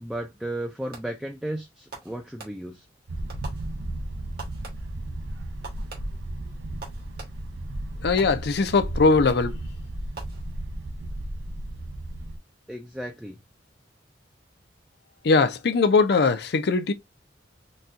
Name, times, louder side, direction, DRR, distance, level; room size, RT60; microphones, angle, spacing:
voice 1, 0.0-2.8 12.7-13.4, right 1 dB, 5° right, 0.3 m, -34 dB
Fireworks, 0.9-1.4 1.9-2.9 3.3-4.1 4.4-5.1 5.6-7.6 8.2-8.8 9.3-9.7 10.1-10.9, right 4 dB, 60° right, 1.2 m, -45 dB
sound 1, 3.1-12.4, right 1 dB, 85° right, 0.6 m, -34 dB
voice 2, 8.0-9.6 15.2-16.9, left 4 dB, 60° left, 0.5 m, -20 dB
4.1 x 2.3 x 2.4 m
head